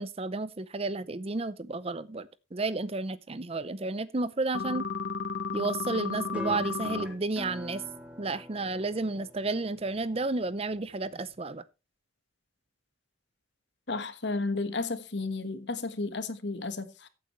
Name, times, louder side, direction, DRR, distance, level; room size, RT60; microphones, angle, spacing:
voice 1, 0.0-4.9 5.5-7.8 8.2-11.6, right 3 dB, 30° right, 0.6 m, -32 dB
sound 1, 4.5-7.0, left 5 dB, 75° left, 1.0 m, -33 dB
sound 2, 6.3-11.3, equal, 5° right, 2.3 m, -45 dB
voice 2, 13.9-17.1, left 3 dB, 60° left, 1.4 m, -33 dB
15.0 x 8.8 x 3.1 m
head